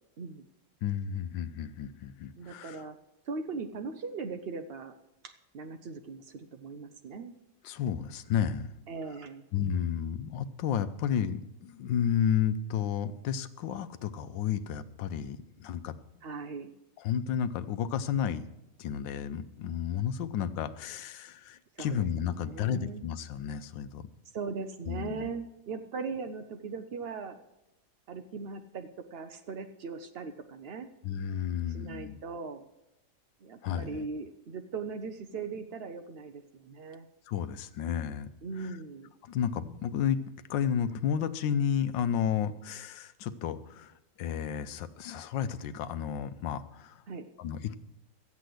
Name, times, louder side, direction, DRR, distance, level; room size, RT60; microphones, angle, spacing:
voice 1, 0.8-2.8 7.6-8.7 9.5-15.9 17.0-18.4 18.8-24.0 24.9-25.3 31.0-32.2 33.6-34.1 37.3-38.3 38.6-38.8 39.2-40.2 40.5-47.0 47.4-47.8, left 8 dB, 85° left, 13 dB, 1.4 m, -32 dB
voice 2, 2.4-3.0 3.3-4.9 5.2-7.3 8.9-9.4 16.2-16.7 21.8-22.0 22.4-23.0 24.3-27.4 28.1-30.9 31.7-32.7 33.4-37.1 38.4-39.1 47.1-47.3, right 4 dB, 70° right, 7 dB, 0.5 m, -39 dB
13.5 x 8.4 x 7.7 m, 0.92 s
omnidirectional pair, 2.0 m